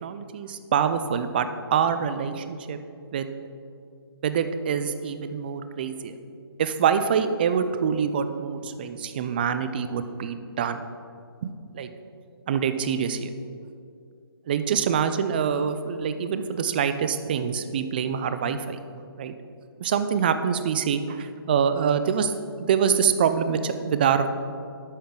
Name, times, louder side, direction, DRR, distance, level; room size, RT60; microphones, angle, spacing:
voice 1, 0.0-2.8 3.1-3.3 4.2-6.2 6.6-10.8 11.4-11.9 12.5-13.3 14.5-18.8 19.2-19.3 19.8-22.3 22.6-24.3, right 7 dB, 25° right, 10 dB, 0.4 m, -25 dB
11.5 x 8.7 x 3.7 m, 2.4 s
hypercardioid pair, 160°, 13 cm